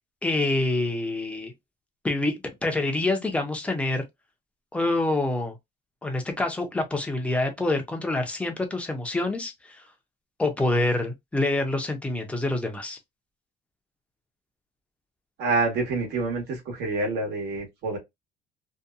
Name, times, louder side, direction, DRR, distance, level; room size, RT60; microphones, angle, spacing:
voice 1, 0.2-1.5 2.0-4.1 4.7-5.5 6.0-9.8 10.4-13.0, left 2 dB, 5° left, 0.6 m, -26 dB
voice 2, 15.4-18.0, right 3 dB, 75° right, 1.2 m, -27 dB
2.7 x 2.2 x 2.3 m
cardioid pair, 150°, 17 cm